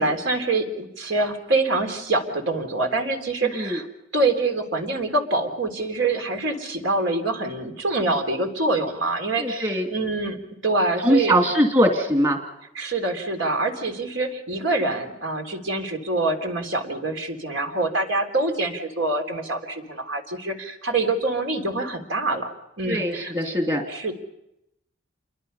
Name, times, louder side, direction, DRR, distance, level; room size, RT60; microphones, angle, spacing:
voice 1, 0.0-3.9 4.1-10.4 10.6-11.3 12.8-22.5 22.8-23.3 23.9-24.1, right 2 dB, 80° right, 4 dB, 3.5 m, -25 dB
voice 2, 9.4-9.9 11.0-12.4 22.9-23.8, equal, 30° right, 3 dB, 2.5 m, -21 dB
28.5 x 23.0 x 5.6 m, 0.84 s
head